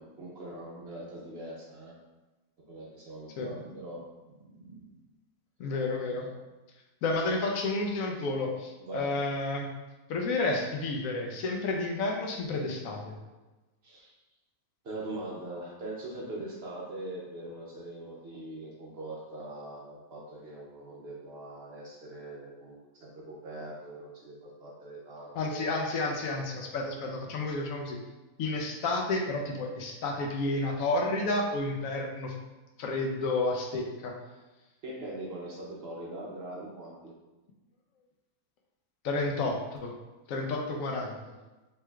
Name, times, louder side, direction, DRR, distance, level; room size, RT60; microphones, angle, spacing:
voice 1, 0.0-1.9 2.7-5.0 6.0-6.3 8.8-9.1 13.8-14.1 14.8-26.7 27.2-27.3 34.8-37.2, right 1 dB, 55° right, -3 dB, 0.8 m, -42 dB
voice 2, 5.6-6.3 7.0-9.7 10.1-13.2 25.3-28.0 28.4-32.3 32.8-34.1 39.0-39.9 40.3-41.2, left 2 dB, 75° left, 1 dB, 1.0 m, -31 dB
4.5 x 3.2 x 2.3 m, 1.1 s
omnidirectional pair, 1.5 m